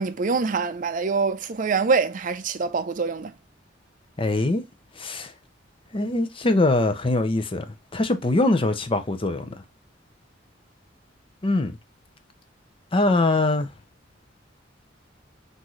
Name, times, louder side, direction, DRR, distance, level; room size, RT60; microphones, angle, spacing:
voice 1, 0.0-3.3, right 4 dB, 45° right, 0.5 m, -25 dB
voice 2, 4.2-4.6 5.0-5.3 5.9-7.6 7.9-9.6 11.4-11.8 12.9-13.7, left 2 dB, 30° left, 0.6 m, -22 dB
5.8 x 2.7 x 3.0 m
head